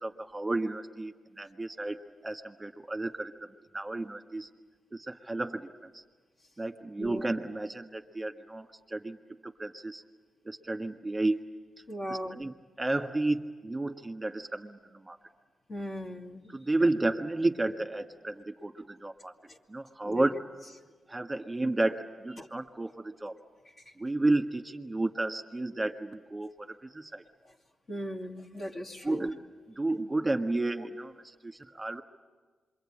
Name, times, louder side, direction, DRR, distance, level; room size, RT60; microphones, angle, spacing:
voice 1, 0.0-2.0 2.2-3.5 3.7-4.5 4.9-6.0 6.6-9.2 9.4-10.0 10.4-11.5 12.1-15.2 16.5-19.3 19.7-20.4 21.1-23.4 24.0-27.2 29.0-29.4 29.7-32.0, right 2 dB, 20° right, 4 dB, 1.6 m, -32 dB
voice 2, 11.9-12.4 15.7-16.5 19.5-19.6 20.0-20.3 22.4-22.5 23.9-24.0 27.4-27.5 27.9-29.3, equal, 50° left, 0 dB, 2.5 m, -38 dB
26.5 x 23.0 x 8.8 m, 1.4 s
cardioid pair, 65°, 0 cm